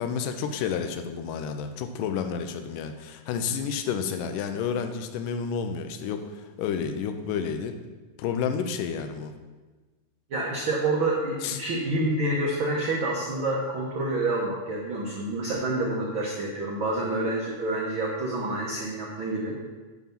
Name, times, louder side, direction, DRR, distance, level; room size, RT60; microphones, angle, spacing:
voice 1, 0.0-7.7 8.2-9.3 11.4-11.6, left 6 dB, 85° left, 7 dB, 2.2 m, -30 dB
voice 2, 10.3-19.6, right 2 dB, 80° right, -3 dB, 1.1 m, -28 dB
11.0 x 3.7 x 5.8 m, 1.3 s
omnidirectional pair, 3.8 m